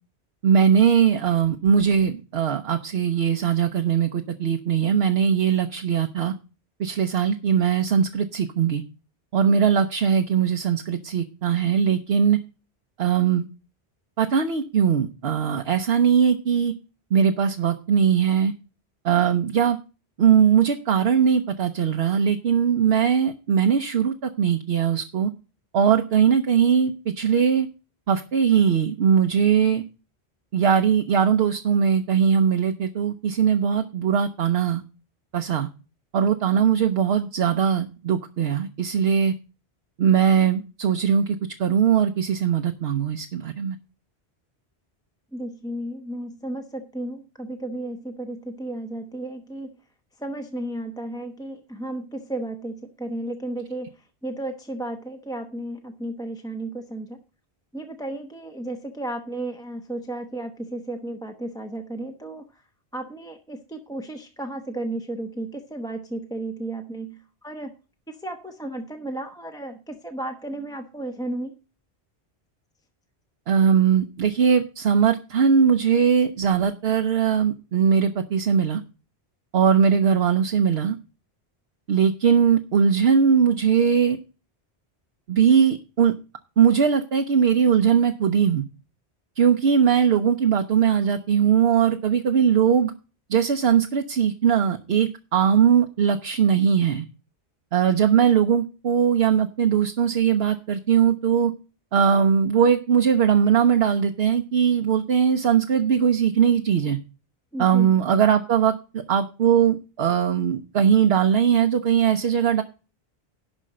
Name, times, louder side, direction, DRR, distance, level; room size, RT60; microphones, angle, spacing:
voice 1, 0.4-6.3 6.8-8.8 9.3-12.4 13.0-13.4 14.2-16.7 17.1-18.5 19.0-19.8 20.2-25.3 25.7-27.7 28.1-29.8 30.5-34.8 35.3-35.7 36.1-39.3 40.0-43.8 73.5-78.8 79.5-81.0 81.9-84.2 85.3-86.1 86.6-88.6 89.4-92.9 93.3-97.0 97.7-101.5 101.9-107.0 107.6-112.6, right 7 dB, 70° right, 6 dB, 1.0 m, -20 dB
voice 2, 45.3-49.7 50.2-57.2 57.7-62.6 62.9-67.7 68.1-71.5 107.5-107.9, right 1 dB, 5° left, 4 dB, 0.8 m, -33 dB
11.5 x 4.4 x 7.5 m, 0.33 s
omnidirectional pair, 1.1 m